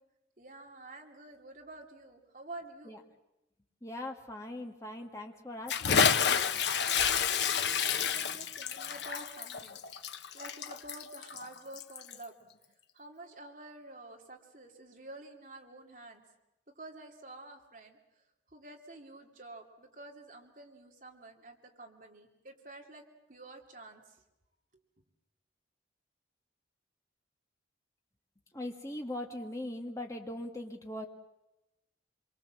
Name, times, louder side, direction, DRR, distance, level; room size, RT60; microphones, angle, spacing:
voice 1, 0.4-3.0 7.3-12.3 12.9-16.2 16.8-18.0 18.5-23.0 23.3-24.0, right 2 dB, 45° right, 2 dB, 2.7 m, -49 dB
voice 2, 3.8-6.2 28.5-31.1, left 1 dB, 15° left, 2 dB, 2.0 m, -40 dB
Bathtub (filling or washing) / Splash splatter, 5.7-12.2, left 7 dB, 70° left, 1.0 m, -29 dB
26.0 x 23.0 x 7.5 m, 0.93 s
head